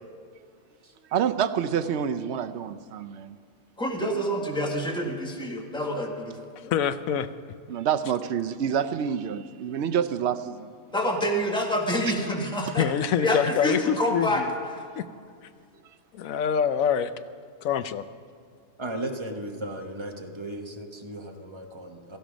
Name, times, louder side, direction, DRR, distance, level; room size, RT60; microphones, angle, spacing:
voice 1, 1.1-3.4 7.7-10.7, right 8 dB, 65° right, 10 dB, 0.8 m, -27 dB
voice 2, 3.8-6.4 10.9-12.9 13.2-14.4, equal, 5° left, 1 dB, 1.6 m, -27 dB
voice 3, 6.6-7.3 12.8-14.5 15.0-15.1 16.1-17.1 17.6-18.0, left 8 dB, 90° left, 12 dB, 1.1 m, -25 dB
voice 4, 18.8-22.2, right 1 dB, 25° right, 3 dB, 1.1 m, -36 dB
17.0 x 14.0 x 5.1 m, 2.2 s
omnidirectional pair, 1.4 m